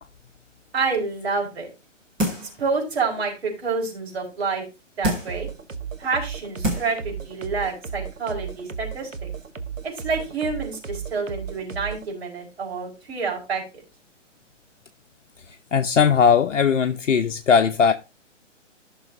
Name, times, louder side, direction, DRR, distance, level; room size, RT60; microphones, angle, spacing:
voice 1, 0.7-1.7 2.6-4.6 5.0-5.5 6.0-9.3 9.8-13.6, right 4 dB, 55° right, 4.8 m, -28 dB
sound 1, 2.2-2.6 3.1-3.2 5.0-5.5 6.2-6.3 6.6-7.0 7.4-7.5, equal, 5° right, 0.4 m, -26 dB
sound 2, 5.3-12.1, right 7 dB, 85° right, 1.1 m, -35 dB
voice 2, 15.5-17.9, left 6 dB, 70° left, 0.8 m, -19 dB
14.5 x 6.3 x 2.6 m
figure-of-eight pair, 135°, 38 cm